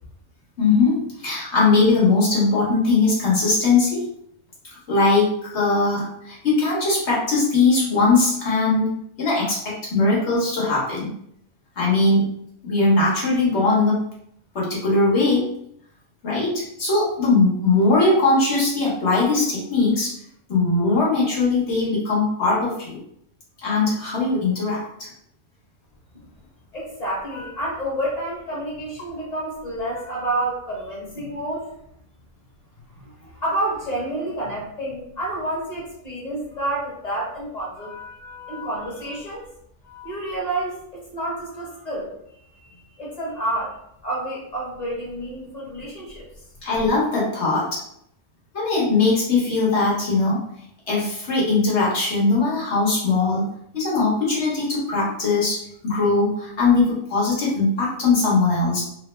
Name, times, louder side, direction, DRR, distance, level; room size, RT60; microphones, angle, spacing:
voice 1, 0.6-4.1 4.9-9.6 9.9-11.1 11.8-12.3 12.6-14.0 14.5-15.5 16.2-20.1 20.5-23.0 23.6-25.1 46.6-47.8 48.5-50.4 50.9-53.4 53.7-55.6 55.8-58.8, left 3 dB, 60° left, -6 dB, 1.5 m, -20 dB
voice 2, 26.7-31.7 32.9-39.4 39.8-42.1 43.0-43.8 44.0-46.2, right 1 dB, 30° left, -5 dB, 1.2 m, -29 dB
3.4 x 2.1 x 3.2 m, 0.72 s
omnidirectional pair, 1.4 m